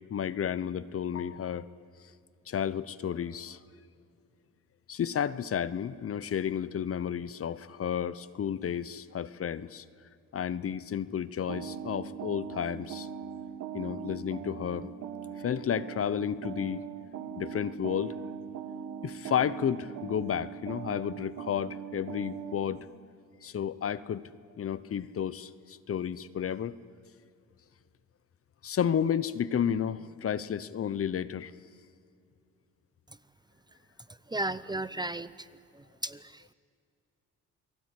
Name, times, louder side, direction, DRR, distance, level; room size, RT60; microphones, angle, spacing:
voice 1, 0.1-1.7 2.5-3.6 4.9-9.8 10.3-13.1 13.7-14.9 15.4-16.8 17.4-18.1 19.0-22.9 23.4-24.3 24.6-26.7 28.6-31.5, left 8 dB, 50° left, 17 dB, 1.0 m, -32 dB
sound 1, 11.5-22.8, right 8 dB, 80° right, 1.9 m, -40 dB
voice 2, 34.3-35.5 35.7-36.5, right 2 dB, 15° right, 16 dB, 0.7 m, -35 dB
29.0 x 19.0 x 9.7 m, 2.4 s
cardioid pair, 90°, 30 cm